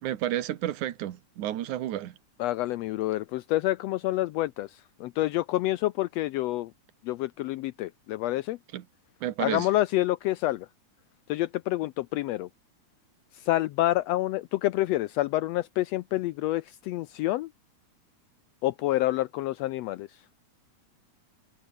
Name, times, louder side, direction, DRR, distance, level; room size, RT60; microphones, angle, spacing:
voice 1, 0.0-2.2 8.7-8.8 9.2-9.7, right 12 dB, 85° right, 2.7 m, -31 dB
voice 2, 2.4-6.7 7.0-8.6 9.4-10.7 11.3-12.5 13.3-17.5 18.6-20.2, left 16 dB, 80° left, 1.5 m, -28 dB
omnidirectional pair, 3.4 m